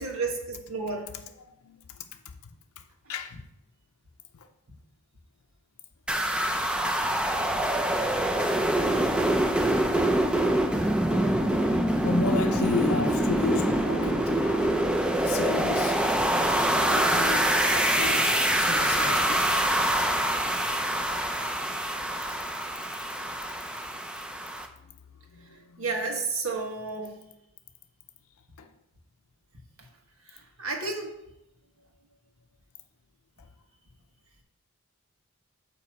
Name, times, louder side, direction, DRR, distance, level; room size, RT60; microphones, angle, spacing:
voice 1, 0.0-1.1 25.8-27.2 30.3-31.1, right 3 dB, 75° right, 1.5 m, -31 dB
voice 2, 1.1-2.4 2.8-2.9 3.1-3.4 4.3-4.5 9.3-9.9 11.1-14.9 15.2-16.2 16.7-20.4 21.1-21.2 22.6-22.7 23.0-23.4 24.8-26.0 28.6-28.7 33.4-33.5, left 4 dB, 85° left, 0.5 m, -35 dB
sound 1, 6.1-24.7, right 1 dB, 5° right, 0.4 m, -25 dB
9.0 x 3.0 x 6.1 m
head